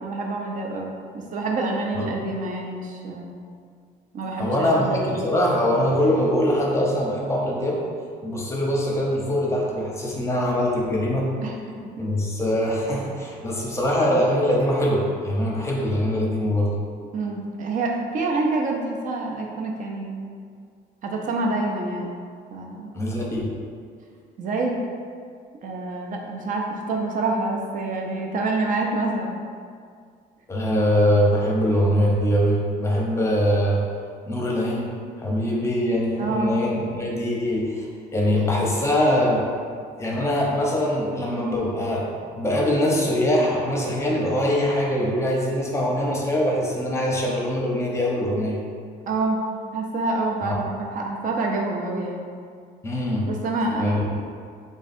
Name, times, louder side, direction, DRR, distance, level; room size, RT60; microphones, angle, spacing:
voice 1, 0.0-3.3 4.1-5.1 11.4-11.5 17.1-20.3 21.0-22.1 22.5-22.9 24.4-24.8 25.6-29.4 36.2-36.6 38.3-38.4 49.1-49.4 49.7-52.2 53.3-54.2, right 2 dB, 50° right, 0 dB, 0.6 m, -27 dB
voice 2, 4.4-7.9 8.2-11.3 12.0-16.7 22.9-23.5 30.5-33.8 34.3-34.9 35.2-37.9 38.1-39.4 40.0-42.1 42.3-48.6 50.4-50.5 52.8-53.3 53.7-54.0, equal, 15° left, -2 dB, 0.7 m, -23 dB
3.6 x 2.4 x 4.1 m, 2.1 s
cardioid pair, 110°, 17 cm